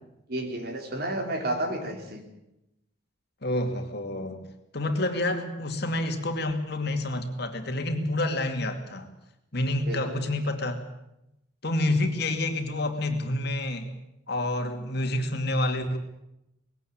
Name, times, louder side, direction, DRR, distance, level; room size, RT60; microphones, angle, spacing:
voice 1, 0.3-2.3 9.9-10.2, right 1 dB, 55° right, 5 dB, 3.5 m, -31 dB
voice 2, 3.4-4.4 4.7-9.1 9.5-10.8 11.6-13.9 14.3-16.0, left 1 dB, 60° left, 6 dB, 2.5 m, -28 dB
20.0 x 17.0 x 8.8 m, 0.87 s
head